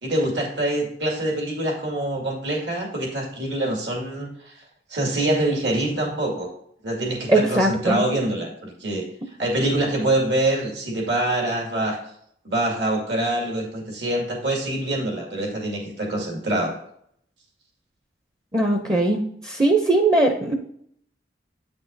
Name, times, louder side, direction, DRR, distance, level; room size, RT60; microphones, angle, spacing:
voice 1, 0.0-4.5 4.9-6.5 6.8-9.0 9.4-12.0 12.4-16.7, right 1 dB, 75° right, 0 dB, 2.1 m, -25 dB
voice 2, 7.3-8.0 18.5-20.5, right 2 dB, 20° right, 3 dB, 0.6 m, -20 dB
8.9 x 5.9 x 2.6 m, 0.69 s
head